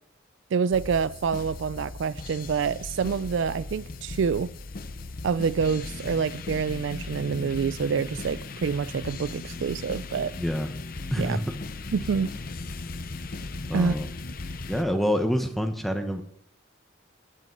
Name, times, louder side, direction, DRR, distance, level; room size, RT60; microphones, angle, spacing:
voice 1, 0.5-4.5 5.2-10.3 11.2-11.4 11.9-12.3 13.7-13.9, right 6 dB, 70° right, 0.4 m, -27 dB
sound 1, 0.7-14.8, left 3 dB, 45° left, 0.6 m, -37 dB
voice 2, 10.4-10.7 11.1-11.4 13.7-14.1 14.7-16.2, equal, ahead, 1.1 m, -27 dB
10.5 x 9.5 x 5.3 m
head